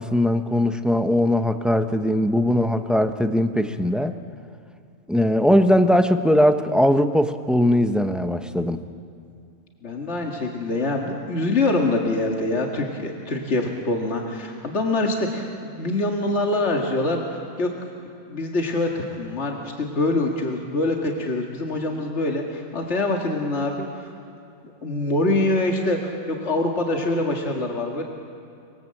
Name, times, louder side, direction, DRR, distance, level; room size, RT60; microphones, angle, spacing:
voice 1, 0.0-4.1 5.1-8.8, left 1 dB, ahead, 8 dB, 0.8 m, -20 dB
voice 2, 9.8-17.7 18.3-24.1 24.8-28.0, left 2 dB, 65° left, 1 dB, 2.3 m, -24 dB
24.5 x 22.5 x 7.8 m, 2.5 s
omnidirectional pair, 1.3 m